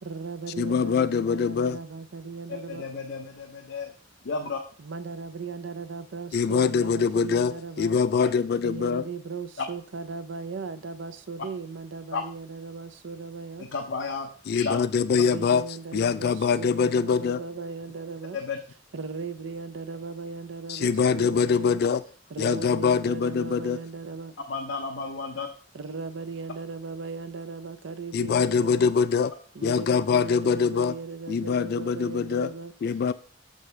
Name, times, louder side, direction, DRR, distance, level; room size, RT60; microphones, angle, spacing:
voice 1, 0.0-2.8 4.8-8.0 8.6-13.6 15.1-18.4 18.9-21.8 22.3-24.4 25.7-28.9 29.5-32.7, right 4 dB, 85° right, 0.6 m, -37 dB
voice 2, 0.6-1.8 6.3-9.0 14.5-15.6 15.9-17.4 20.7-22.0 22.4-23.8 28.1-29.3 29.6-30.9 31.3-32.5 32.8-33.1, left 6 dB, 55° left, 0.3 m, -24 dB
voice 3, 2.7-3.9 4.2-4.6 8.2-8.3 9.6-9.7 12.1-12.2 13.6-14.8 18.3-18.6 24.5-25.5, left 4 dB, 80° left, 0.7 m, -32 dB
6.8 x 6.4 x 3.3 m
head